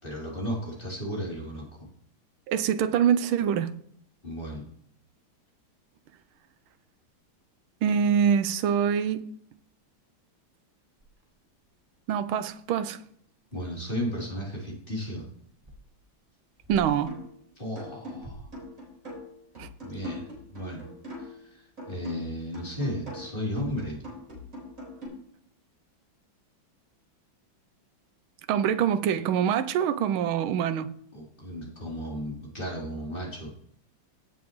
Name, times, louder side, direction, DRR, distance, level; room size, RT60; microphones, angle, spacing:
voice 1, 0.0-1.9 4.2-4.7 13.5-15.2 17.6-18.5 19.8-20.2 20.5-20.8 21.2-24.0 31.1-33.5, equal, 25° left, 3.6 m, -34 dB
voice 2, 2.5-3.7 7.8-9.2 12.1-13.0 16.7-17.2 19.6-19.7 28.5-30.9, right 8 dB, 85° right, 1.6 m, -25 dB
sound 1, 6.2-7.7 8.2-8.3 8.5-8.8 9.1-9.2 9.5-10.0 10.4-10.5 11.0-17.2 18.0-18.7, right 1 dB, 20° right, 1.7 m, -51 dB
sound 2, 17.1-17.4 17.8-21.5 21.8-25.1, left 1 dB, 40° right, 4.8 m, -42 dB
17.0 x 7.3 x 3.1 m
omnidirectional pair, 2.2 m